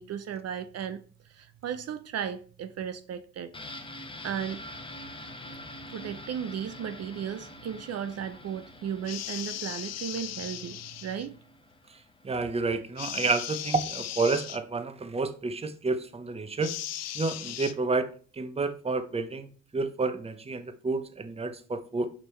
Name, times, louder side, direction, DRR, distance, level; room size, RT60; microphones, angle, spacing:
voice 1, 0.0-3.5 4.2-4.6 5.9-11.3, right 8 dB, 55° right, 10 dB, 0.6 m, -35 dB
sound 1, 3.5-13.2 13.5-13.6, left 1 dB, 15° left, 1.0 m, -46 dB
sound 2, 9.0-11.3 13.0-14.6 16.6-17.7, left 12 dB, 60° left, 0.5 m, -37 dB
voice 2, 12.2-16.7 17.1-22.1, right 3 dB, 20° right, 10 dB, 0.7 m, -30 dB
5.3 x 5.0 x 4.4 m, 0.41 s
cardioid pair, 90°, 30 cm